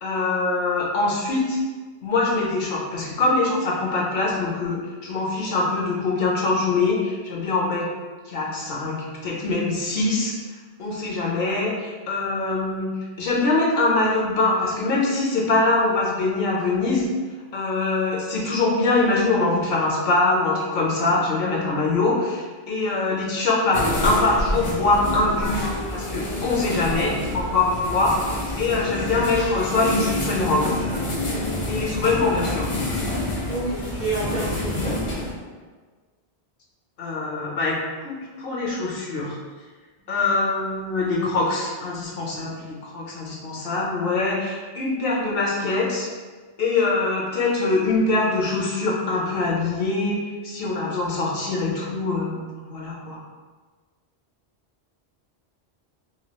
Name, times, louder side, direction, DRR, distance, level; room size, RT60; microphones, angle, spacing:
voice 1, 0.0-1.6 2.0-7.9 8.3-10.3 10.8-12.9 13.2-17.1 17.5-30.7 31.7-32.7 37.0-39.4 40.1-46.1 46.6-53.2, left 3 dB, 65° left, -4 dB, 0.8 m, -23 dB
sound 1, 23.7-35.3, left 1 dB, 40° left, 0.5 m, -27 dB
voice 2, 33.5-35.0, right 2 dB, 55° right, -6 dB, 0.6 m, -28 dB
2.9 x 2.3 x 2.9 m, 1.4 s
omnidirectional pair, 1.1 m